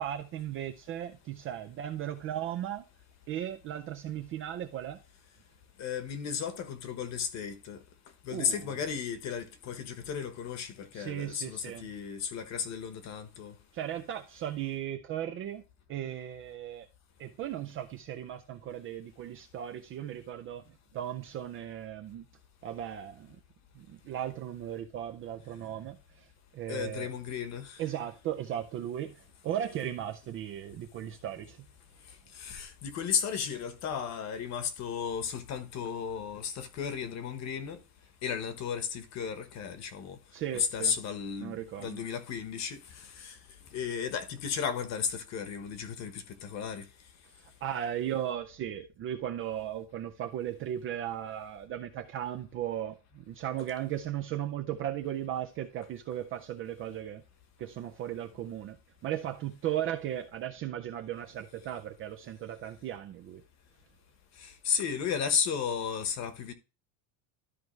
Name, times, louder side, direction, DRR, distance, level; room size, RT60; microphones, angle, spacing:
voice 1, 0.0-2.9 3.3-5.0 8.3-8.8 10.9-11.9 13.7-15.6 15.9-16.9 17.2-20.6 20.9-22.2 22.6-23.4 23.8-26.2 26.5-27.1 27.8-31.6 40.3-41.0 41.4-42.0 47.6-57.2 57.6-58.8 59.0-63.4, right 11 dB, 30° right, 0.4 m, -36 dB
voice 2, 5.8-7.8 8.2-13.5 26.7-27.8 32.4-37.8 38.2-40.2 40.5-43.3 43.7-46.8 64.4-66.5, left 7 dB, 35° left, 1.1 m, -34 dB
13.0 x 4.6 x 3.1 m
cardioid pair, 165°, 45 cm